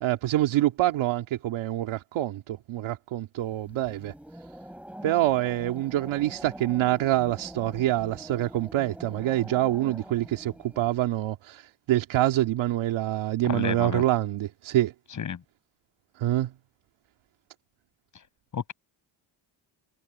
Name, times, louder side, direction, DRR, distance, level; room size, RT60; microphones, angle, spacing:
voice 1, 0.0-4.1 5.0-14.9 16.2-16.5, right 14 dB, 85° right, 2.2 m, -26 dB
sound 1, 3.4-11.0, equal, 5° right, 7.5 m, -45 dB
voice 2, 13.4-14.0 15.1-15.4 18.5-18.7, left 7 dB, 40° left, 6.5 m, -31 dB
cardioid pair, 155°, 46 cm